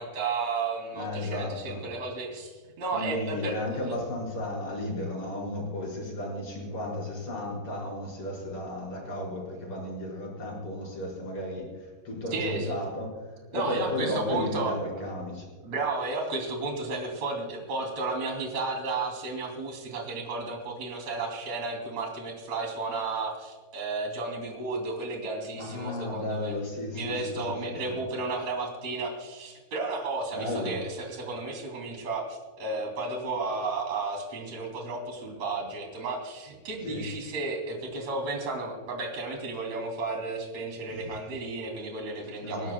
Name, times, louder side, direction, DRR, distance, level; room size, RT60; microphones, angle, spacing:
voice 1, 0.0-3.5 12.3-12.7 13.5-14.8 15.6-26.5 26.9-42.7, right 3 dB, 40° right, 2 dB, 3.7 m, -33 dB
voice 2, 0.9-1.8 2.9-15.5 25.6-28.0 30.3-30.8 36.8-37.1 40.9-41.2 42.4-42.7, left 1 dB, 30° left, -2 dB, 5.7 m, -34 dB
30.0 x 13.0 x 2.3 m, 1.5 s
omnidirectional pair, 5.2 m